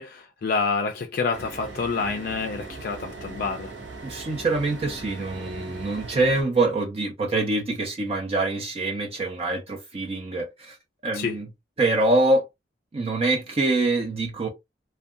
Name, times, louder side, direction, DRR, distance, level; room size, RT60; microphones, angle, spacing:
voice 1, 0.0-3.7 11.1-11.4, left 4 dB, 55° left, 0.4 m, -28 dB
sound 1, 1.3-6.4, right 3 dB, 85° right, 0.7 m, -39 dB
voice 2, 4.0-10.8 11.0-11.5 11.8-12.5 12.9-14.5, right 2 dB, 35° right, 0.4 m, -25 dB
2.6 x 2.2 x 2.3 m
head